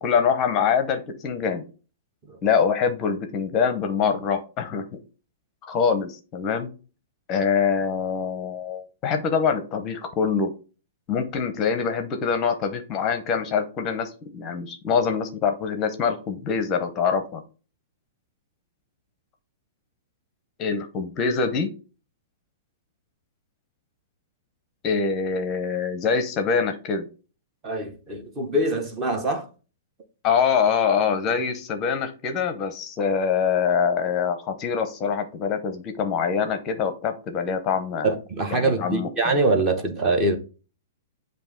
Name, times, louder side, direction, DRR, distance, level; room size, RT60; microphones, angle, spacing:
voice 1, 0.0-1.6 2.4-4.9 5.6-6.7 7.3-10.5 11.1-17.4 20.6-21.7 24.8-27.1 30.2-38.1 38.5-39.1, left 6 dB, 25° left, 0.7 m, -24 dB
voice 2, 27.6-29.5 38.0-40.4, right 2 dB, 20° right, 0.9 m, -24 dB
7.7 x 2.6 x 5.1 m
hypercardioid pair, 165°, 0 cm